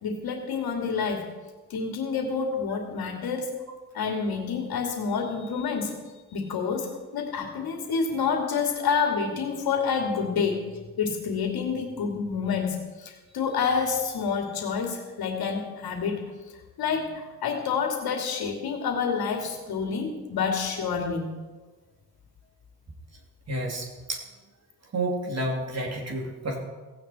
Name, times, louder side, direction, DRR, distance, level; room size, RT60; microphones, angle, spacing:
voice 1, 0.0-1.3 1.7-3.5 3.9-5.9 6.3-10.7 11.0-16.3 16.8-21.3, left 5 dB, 80° left, 1 dB, 2.9 m, -28 dB
voice 2, 23.5-24.2 24.9-26.6, right 1 dB, 45° right, -1 dB, 3.2 m, -30 dB
17.0 x 17.0 x 4.5 m, 1.3 s
cardioid pair, 120°, 37 cm